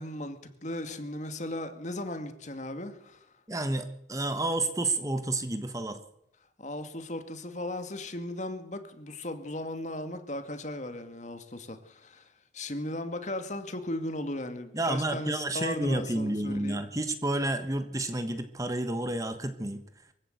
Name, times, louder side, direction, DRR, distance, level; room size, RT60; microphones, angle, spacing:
voice 1, 0.0-3.3 6.6-12.3 12.5-16.8, left 1 dB, 40° left, 8 dB, 2.1 m, -37 dB
voice 2, 3.5-6.0 14.7-19.8, right 2 dB, 20° right, 9 dB, 1.3 m, -30 dB
23.5 x 15.5 x 8.0 m, 0.84 s
head